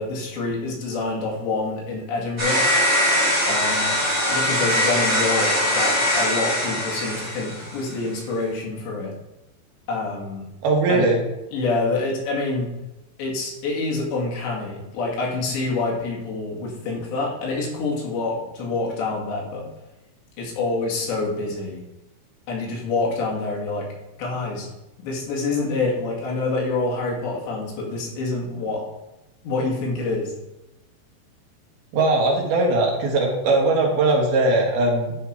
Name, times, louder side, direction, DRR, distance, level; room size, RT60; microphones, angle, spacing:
voice 1, 0.0-2.6 3.4-3.9 4.3-9.1 9.9-10.5 10.9-11.1 11.5-12.7 13.2-19.6 20.4-21.8 22.5-23.9 24.2-24.7 25.0-28.8 29.4-30.3, left 3 dB, 65° left, -3 dB, 4.4 m, -26 dB
sound 1, 2.4-7.9, equal, 10° right, 2.8 m, -21 dB
voice 2, 10.6-11.2 31.9-35.2, right 2 dB, 60° right, 0 dB, 3.1 m, -20 dB
11.5 x 6.3 x 4.8 m, 0.94 s
omnidirectional pair, 5.6 m